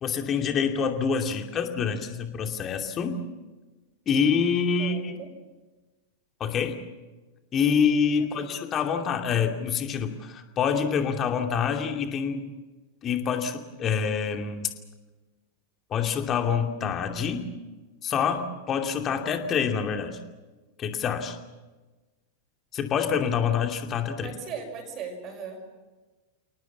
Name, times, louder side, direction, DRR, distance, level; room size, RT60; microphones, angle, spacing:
voice 1, 0.0-3.2 4.1-5.1 6.4-6.8 7.5-12.5 13.0-14.7 15.9-17.5 18.0-20.2 20.8-21.4 22.7-24.3, left 6 dB, 30° left, 5 dB, 2.6 m, -26 dB
voice 2, 4.8-5.3 8.4-8.6 24.2-25.7, right 5 dB, 35° right, 1 dB, 6.1 m, -38 dB
29.5 x 19.0 x 7.2 m, 1.2 s
figure-of-eight pair, 90°, 0 cm